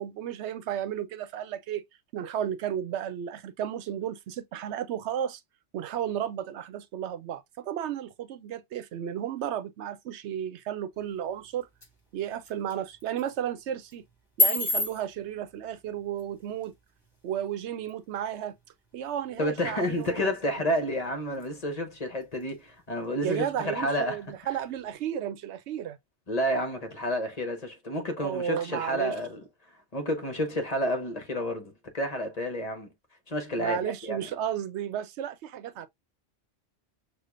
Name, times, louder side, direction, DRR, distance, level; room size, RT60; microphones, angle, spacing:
voice 1, 0.0-1.8 2.1-5.4 5.7-11.7 12.1-14.0 14.4-16.7 17.2-18.5 18.9-20.5 23.2-26.0 28.2-29.1 33.6-35.9, right 10 dB, 80° right, 0.9 m, -33 dB
sound 1, 10.9-24.9, left 1 dB, 20° left, 1.9 m, -37 dB
voice 2, 19.4-24.2 26.3-29.4 29.9-32.9 33.3-34.3, equal, 35° left, 1.0 m, -30 dB
6.5 x 2.4 x 2.4 m
omnidirectional pair, 1.2 m